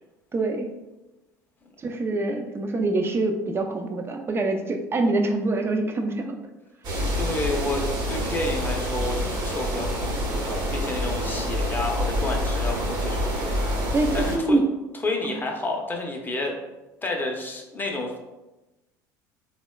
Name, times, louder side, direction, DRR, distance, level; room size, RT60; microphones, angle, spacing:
voice 1, 0.3-0.7 1.8-6.4 13.9-14.7 15.2-15.4, right 2 dB, 25° right, 5 dB, 0.4 m, -25 dB
sound 1, 6.8-14.4, equal, 50° right, 0.8 m, -27 dB
voice 2, 7.2-13.5 14.1-14.6 15.0-16.6 17.0-18.2, left 2 dB, 20° left, 1 dB, 0.6 m, -30 dB
3.4 x 2.2 x 2.2 m, 1.0 s
hypercardioid pair, 70°, 10 cm